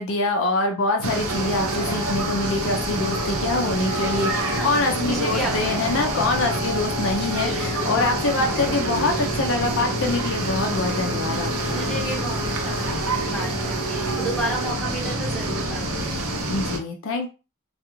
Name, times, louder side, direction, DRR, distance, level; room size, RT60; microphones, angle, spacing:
voice 1, 0.0-11.5 16.5-17.3, left 2 dB, 60° left, 3 dB, 0.4 m, -25 dB
sound 1, 1.0-16.8, right 1 dB, 75° right, 0.7 m, -27 dB
sound 2, 1.3-14.7, equal, 35° right, 1.3 m, -33 dB
voice 2, 4.5-5.8 7.4-8.0 8.4-8.6 11.7-16.4, right 1 dB, ahead, -4 dB, 0.8 m, -32 dB
2.3 x 2.3 x 2.9 m, 0.32 s
head